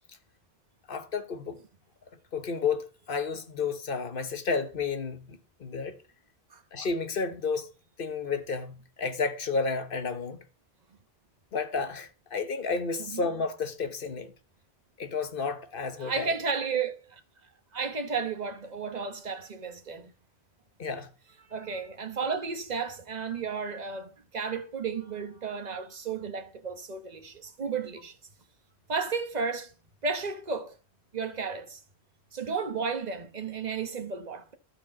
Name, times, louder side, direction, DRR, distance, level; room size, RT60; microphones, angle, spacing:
voice 1, 0.9-1.6 2.3-6.0 6.7-7.7 8.0-10.4 11.5-14.3 15.0-16.3 20.8-21.1, left 5 dB, 55° left, 1.2 m, -31 dB
voice 2, 16.0-17.2 17.7-20.1 21.5-28.2 28.9-29.7 30.0-30.7 31.1-31.8 32.3-34.5, right 5 dB, 40° right, 1.2 m, -33 dB
12.0 x 4.8 x 5.8 m
omnidirectional pair, 1.1 m